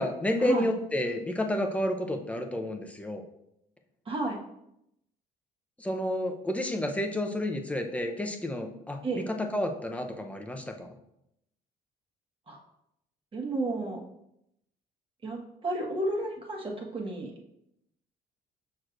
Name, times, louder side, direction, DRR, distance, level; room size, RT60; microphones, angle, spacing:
voice 1, 0.0-3.2 5.8-10.9, left 1 dB, 10° left, 4 dB, 0.7 m, -30 dB
voice 2, 4.0-4.4 9.0-9.2 12.5-12.6 13.3-14.0 15.2-17.3, right 2 dB, 30° right, -1 dB, 1.4 m, -32 dB
6.3 x 6.2 x 2.5 m, 0.80 s
cardioid pair, 110°, 17 cm